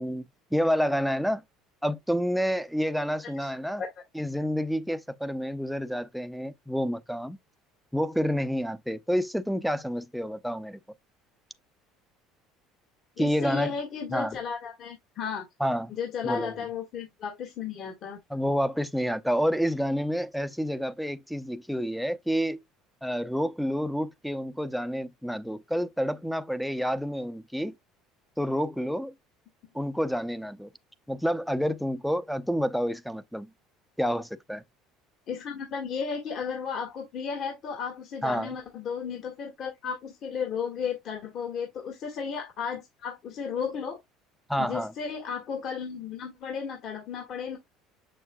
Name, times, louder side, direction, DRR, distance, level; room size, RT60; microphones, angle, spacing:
voice 1, 0.0-1.4 1.8-3.8 4.1-7.4 7.9-10.8 13.2-13.7 14.1-14.4 15.6-15.9 16.2-16.5 18.3-22.6 23.0-27.7 28.4-29.1 29.7-30.7 31.1-33.5 34.0-34.6 38.2-38.6 44.5-44.9, equal, ahead, 0.6 m, -29 dB
voice 2, 13.2-15.4 16.0-18.2 35.3-44.0 44.6-47.6, left 6 dB, 55° left, 1.9 m, -34 dB
6.7 x 6.5 x 2.2 m
supercardioid pair, 100°, 0 cm